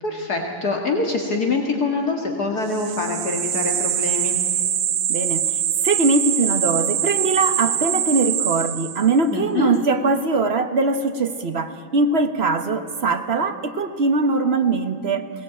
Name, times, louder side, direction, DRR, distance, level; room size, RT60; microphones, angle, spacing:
voice 1, 0.0-4.4 9.3-9.7, left 3 dB, 50° left, 2 dB, 2.1 m, -24 dB
sound 1, 2.7-9.2, right 10 dB, 60° right, 1.6 m, -23 dB
voice 2, 5.1-15.2, right 3 dB, 45° right, 8 dB, 0.9 m, -21 dB
22.0 x 18.0 x 8.9 m, 2.5 s
omnidirectional pair, 2.4 m